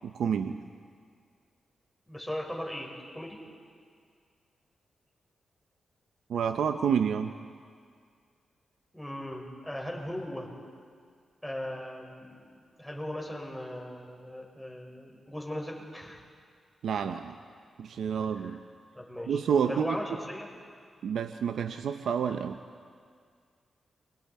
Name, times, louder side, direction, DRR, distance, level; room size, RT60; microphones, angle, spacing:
voice 1, 0.0-0.6 6.3-7.3 16.8-17.4 17.8-18.6 19.3-20.0 21.0-22.6, right 7 dB, 80° right, 7 dB, 0.7 m, -29 dB
voice 2, 2.1-3.4 8.9-10.5 11.4-12.3 12.8-16.2 18.4-18.5 18.9-19.4 19.7-20.5, left 1 dB, 5° left, -1 dB, 5.4 m, -38 dB
28.5 x 24.0 x 4.3 m, 2.1 s
cardioid pair, 55°, 0 cm